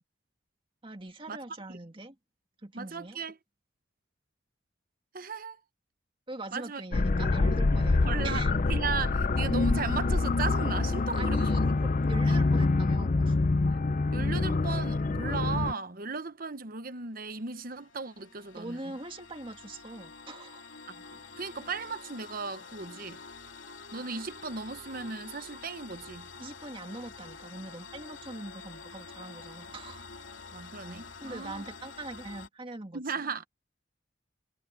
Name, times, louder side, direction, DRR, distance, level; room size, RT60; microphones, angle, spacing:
voice 1, 0.8-2.2 2.6-3.2 6.3-8.5 11.2-13.4 18.5-20.6 26.4-30.1 31.2-33.1, right 2 dB, 25° right, 2.0 m, -42 dB
voice 2, 2.7-3.3 5.1-5.6 6.5-6.8 7.7-8.4 8.7-11.5 14.1-18.8 20.9-23.2 23.9-26.3 30.5-31.6 32.9-33.5, right 4 dB, 45° right, 1.0 m, -36 dB
sound 1, 6.9-15.7, left 3 dB, 40° left, 0.5 m, -26 dB
sound 2, 17.3-32.5, left 4 dB, 80° left, 2.9 m, -48 dB
head